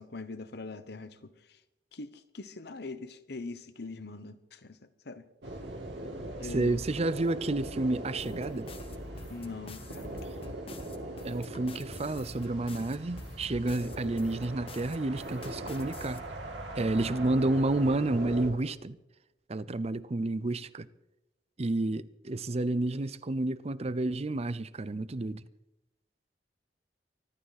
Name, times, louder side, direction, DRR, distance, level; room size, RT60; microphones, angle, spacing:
voice 1, 0.0-1.3 1.9-5.2 6.4-6.8 9.3-10.1, left 3 dB, 65° left, 1.0 m, -42 dB
sound 1, 5.4-18.5, right 1 dB, 85° right, 3.0 m, -40 dB
voice 2, 6.4-8.7 11.2-16.2 16.8-19.0 19.5-20.9 21.6-25.4, right 2 dB, 35° right, 0.6 m, -30 dB
sound 2, 8.2-16.2, left 3 dB, 35° left, 1.3 m, -48 dB
24.5 x 12.0 x 4.2 m
head